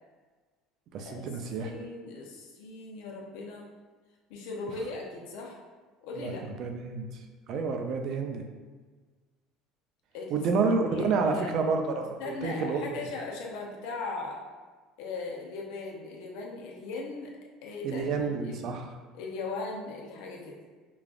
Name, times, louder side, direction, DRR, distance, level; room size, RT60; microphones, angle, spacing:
voice 1, 0.9-1.7 6.2-6.3 6.6-7.2 7.5-8.4 10.3-13.0 17.8-18.9, right 4 dB, 55° right, 4 dB, 0.5 m, -29 dB
voice 2, 1.6-3.7 4.3-5.6 6.0-6.4 10.1-10.4 10.9-11.5 12.2-14.4 15.0-17.3 17.6-18.1 18.4-18.7 19.1-20.6, left 3 dB, 80° left, -1 dB, 0.7 m, -38 dB
5.0 x 2.4 x 2.4 m, 1.4 s
cardioid pair, 125°, 0 cm